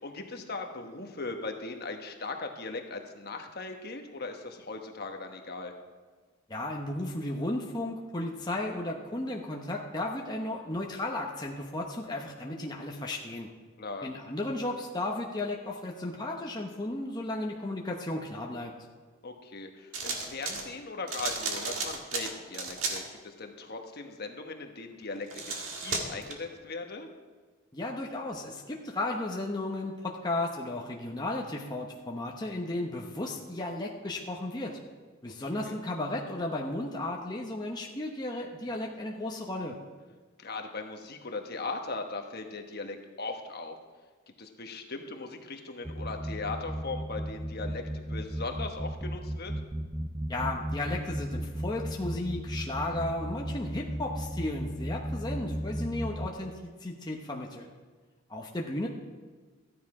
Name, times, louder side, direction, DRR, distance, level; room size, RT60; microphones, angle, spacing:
voice 1, 0.0-5.7 13.8-14.1 19.2-25.3 25.7-27.1 35.5-35.8 40.4-43.8 44.4-49.5, left 3 dB, 50° left, 4 dB, 1.2 m, -39 dB
voice 2, 6.5-13.5 14.0-18.7 27.7-34.8 35.2-39.8 50.3-57.7 58.3-58.9, left 2 dB, 20° left, -1 dB, 0.9 m, -34 dB
sound 1, 19.9-20.7 21.1-23.0 25.1-26.3, right 4 dB, 75° right, 1.8 m, -34 dB
sound 2, 45.8-56.3, equal, 10° right, 0.5 m, -35 dB
14.0 x 10.0 x 4.9 m, 1.4 s
head